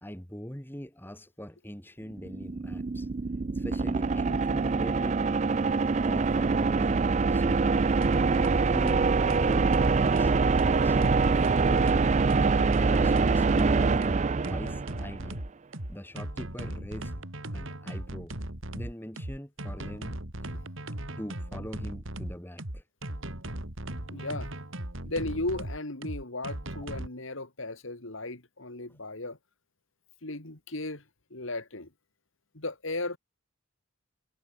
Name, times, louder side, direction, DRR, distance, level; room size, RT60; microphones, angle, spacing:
voice 1, 0.0-3.1 3.5-5.2 6.0-7.0 7.3-7.9 8.6-9.0 9.3-9.7 10.0-10.4 10.7-15.5 15.9-17.1 17.5-18.4 18.7-20.1 21.1-22.8, equal, 10° left, 2.8 m, -42 dB
sound 1, 2.1-15.2, right 4 dB, 30° right, 0.4 m, -25 dB
sound 2, 8.0-27.1, right 1 dB, 60° right, 3.3 m, -38 dB
voice 2, 24.1-24.5 25.0-29.4 30.2-31.0 31.3-31.9 32.5-33.2, left 2 dB, 60° left, 2.5 m, -35 dB
head